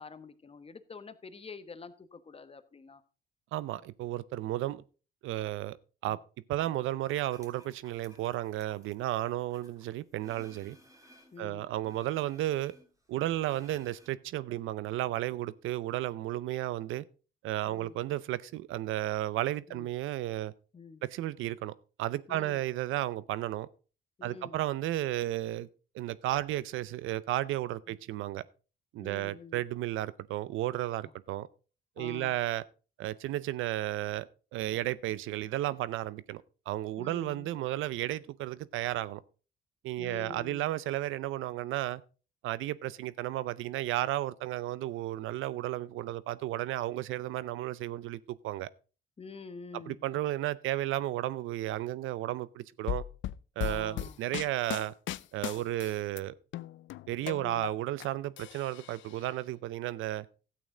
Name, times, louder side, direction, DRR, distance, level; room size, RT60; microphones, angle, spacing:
voice 1, 0.0-3.0 6.1-6.2 11.3-11.7 17.7-18.0 19.7-19.9 20.7-21.0 22.3-22.6 24.2-24.6 27.9-28.0 29.0-29.6 31.0-31.1 32.0-32.4 37.0-37.5 40.0-40.7 49.2-50.0 53.6-54.2 57.2-57.7, left 4 dB, 30° left, 1.1 m, -47 dB
voice 2, 3.5-4.8 5.2-5.8 6.0-6.2 6.5-10.8 11.4-12.7 13.1-17.0 17.4-20.5 21.0-21.7 22.0-23.7 24.2-25.7 25.9-28.4 28.9-31.5 32.0-32.6 33.0-39.2 39.8-42.0 42.4-48.7 49.9-53.0 53.6-54.9 55.3-56.3 57.1-60.3, right 14 dB, 85° right, 0.6 m, -33 dB
sound 1, 7.1-11.4 11.8-14.1, equal, 15° right, 2.8 m, -59 dB
sound 2, 52.9-56.2 56.5-58.1 58.4-59.2, left 13 dB, 70° left, 0.4 m, -37 dB
12.5 x 8.7 x 3.8 m
cardioid pair, 90°, 20 cm